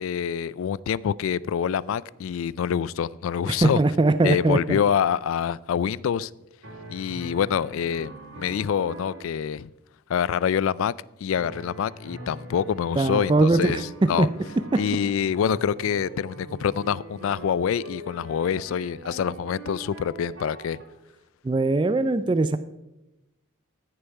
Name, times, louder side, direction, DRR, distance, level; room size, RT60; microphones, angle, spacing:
voice 1, 0.0-3.8 4.2-6.3 6.9-8.1 8.4-9.7 10.1-10.9 11.2-14.3 14.8-20.8, left 8 dB, 75° left, 0.3 m, -26 dB
voice 2, 3.5-4.8 13.0-14.3 14.7-14.8 21.4-22.6, right 2 dB, 25° right, 0.3 m, -21 dB
sound 1, 4.5-4.8 6.6-9.3 11.3-20.8, right 1 dB, 75° right, 3.1 m, -42 dB
14.5 x 6.8 x 4.6 m
head